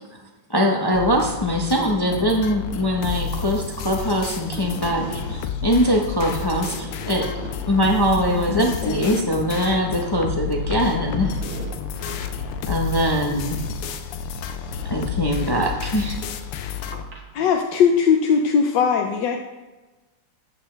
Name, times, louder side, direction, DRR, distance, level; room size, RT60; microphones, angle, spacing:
voice 1, 0.5-5.0 5.6-7.3 7.7-11.3 12.7-13.6 14.9-16.2, equal, 40° left, 0 dB, 0.3 m, -22 dB
sound 1, 0.9-17.0, left 7 dB, 85° left, 1.6 m, -30 dB
voice 2, 3.1-3.5 4.5-5.4 6.6-7.5 10.7-10.8 11.1-12.2 13.6-13.7 16.9-17.2, right 3 dB, 70° right, -1 dB, 2.3 m, -38 dB
voice 3, 8.3-9.6 17.3-19.4, left 6 dB, 65° left, 3 dB, 1.2 m, -21 dB
14.0 x 8.6 x 3.3 m, 1.1 s
omnidirectional pair, 2.4 m